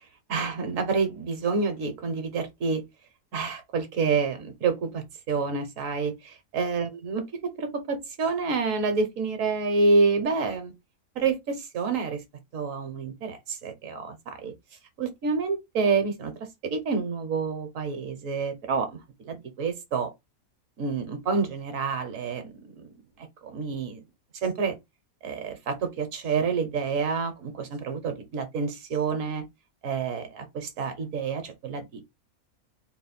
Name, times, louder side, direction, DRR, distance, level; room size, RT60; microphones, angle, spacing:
voice 1, 0.3-2.8 3.3-10.7 11.1-12.2 12.5-14.5 15.0-16.3 16.6-19.0 19.2-20.1 20.8-22.9 23.2-24.0 24.4-24.7 25.2-29.4 29.8-32.0, right 4 dB, 70° right, 1.3 m, -28 dB
4.1 x 2.2 x 4.1 m
omnidirectional pair, 1.5 m